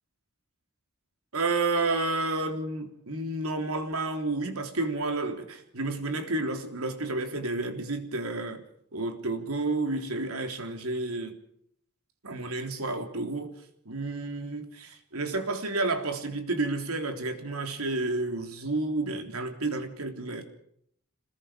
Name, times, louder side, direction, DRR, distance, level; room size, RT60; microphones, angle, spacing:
voice 1, 1.3-8.6 8.9-11.3 12.2-13.5 13.9-20.5, right 2 dB, 80° right, 5 dB, 3.6 m, -30 dB
27.0 x 21.0 x 5.1 m, 0.69 s
head